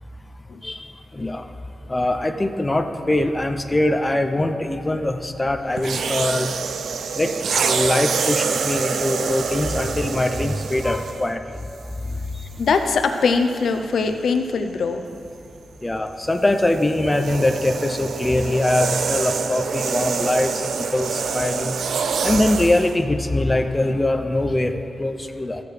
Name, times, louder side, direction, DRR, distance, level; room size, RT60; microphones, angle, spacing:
voice 1, 1.1-1.5 1.9-6.5 7.2-7.3 7.6-11.4 12.4-12.5 15.8-21.7 22.2-25.6, left 1 dB, 15° left, 6 dB, 0.5 m, -22 dB
sound 1, 5.8-11.3 12.1-12.3 16.3-23.0, right 5 dB, 80° right, 0.4 m, -26 dB
voice 2, 12.6-15.0, left 4 dB, 75° left, 6 dB, 0.6 m, -21 dB
14.5 x 6.7 x 3.3 m, 2.8 s
wide cardioid pair, 125°, 0 cm